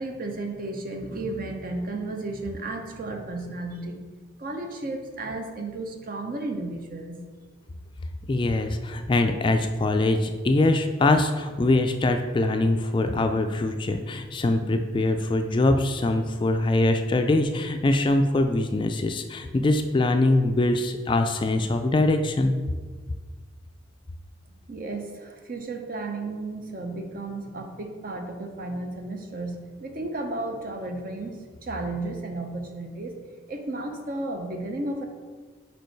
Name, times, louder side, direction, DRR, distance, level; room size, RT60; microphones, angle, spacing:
voice 1, 0.0-4.0 4.4-7.3 24.7-33.2 33.5-35.1, right 2 dB, 50° right, 4 dB, 0.7 m, -33 dB
voice 2, 8.3-22.5, left 2 dB, 25° left, 6 dB, 0.3 m, -23 dB
5.2 x 4.6 x 4.5 m, 1.5 s
head